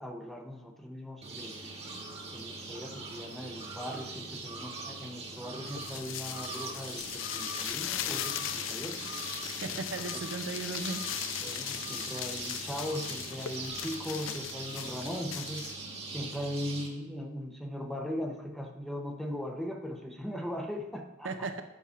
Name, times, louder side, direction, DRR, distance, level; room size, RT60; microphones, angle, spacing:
voice 1, 0.0-1.6 2.3-9.2 10.1-10.2 11.4-15.7 16.1-21.6, equal, ahead, 3 dB, 0.6 m, -39 dB
sound 1, 1.2-16.9, right 3 dB, 35° right, 1.3 m, -42 dB
sound 2, 5.7-15.8, left 12 dB, 80° left, 0.4 m, -38 dB
voice 2, 9.6-11.0 21.2-21.6, right 3 dB, 75° right, 7 dB, 0.7 m, -36 dB
8.0 x 4.8 x 5.7 m, 0.98 s
head